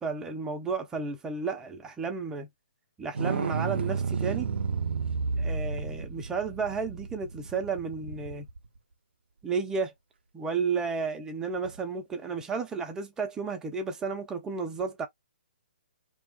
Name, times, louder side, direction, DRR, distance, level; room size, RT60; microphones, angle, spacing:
voice 1, 0.0-2.5 3.0-4.5 5.4-8.5 9.4-9.9 10.3-15.1, right 5 dB, 10° right, 0.5 m, -32 dB
sound 1, 3.1-8.6 11.6-11.7, right 5 dB, 75° right, 0.5 m, -31 dB
2.7 x 2.3 x 2.3 m
hypercardioid pair, 140°, 6 cm